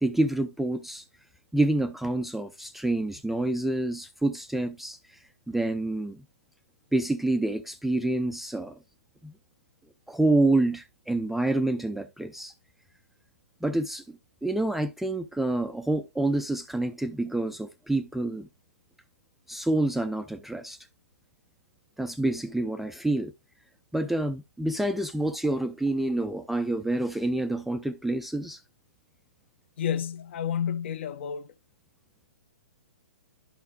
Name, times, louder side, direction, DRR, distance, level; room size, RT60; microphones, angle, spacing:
voice 1, 0.0-1.0 1.5-5.2 5.5-6.2 6.9-8.8 9.2-9.3 10.1-12.5 13.6-18.5 19.5-20.8 22.0-23.3 23.9-28.6, right 2 dB, ahead, 0.4 m, -27 dB
voice 2, 29.8-31.5, left 8 dB, 45° left, 0.7 m, -30 dB
11.0 x 5.9 x 2.3 m
figure-of-eight pair, 120°, 8 cm